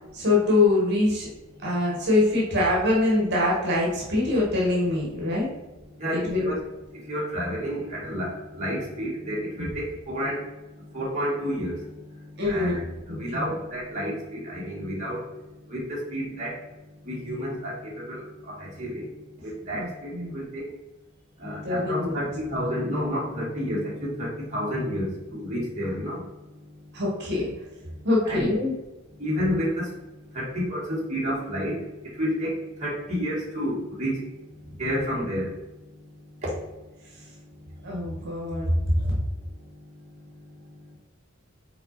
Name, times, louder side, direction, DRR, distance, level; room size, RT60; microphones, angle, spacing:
voice 1, 0.1-1.3 1.6-5.5 6.1-6.5 9.6-9.7 12.4-12.8 13.1-13.5 19.7-20.3 21.6-22.3 26.9-27.5 28.0-28.7 34.7-34.8 37.8-39.2, left 2 dB, 55° right, -3 dB, 1.7 m, -24 dB
voice 2, 6.0-6.6 6.9-10.4 10.8-15.2 15.7-16.6 17.0-19.1 19.4-20.6 21.4-26.2 28.2-28.5 29.2-29.9 30.3-34.2 34.8-35.5 36.4-36.6, equal, 35° right, -6 dB, 1.8 m, -30 dB
5.8 x 4.1 x 4.1 m, 1.0 s
head